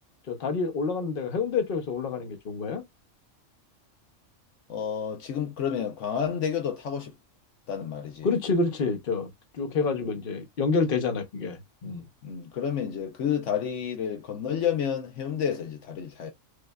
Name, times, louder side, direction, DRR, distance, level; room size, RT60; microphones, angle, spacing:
voice 1, 0.3-2.8 8.2-9.3 9.5-12.0, left 4 dB, 50° left, 1.0 m, -28 dB
voice 2, 4.7-7.1 7.7-8.3 12.2-16.3, left 8 dB, 75° left, 1.0 m, -30 dB
6.3 x 2.5 x 2.2 m
omnidirectional pair, 1.3 m